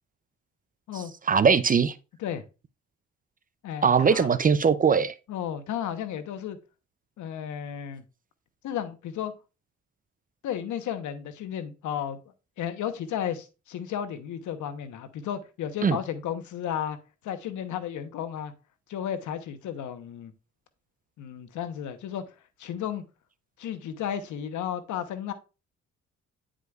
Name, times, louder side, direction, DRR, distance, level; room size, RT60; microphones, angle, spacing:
voice 1, 1.3-1.9 3.8-5.2 15.8-16.0, right 6 dB, 30° right, 0.4 m, -20 dB
voice 2, 3.6-4.3 5.3-6.6 7.2-8.0 8.6-9.3 10.4-12.2 12.6-17.0 17.2-18.5 18.9-20.3 21.2-23.0 23.6-25.3, left 9 dB, 75° left, 1.0 m, -33 dB
9.3 x 5.0 x 2.3 m
cardioid pair, 90°, 30 cm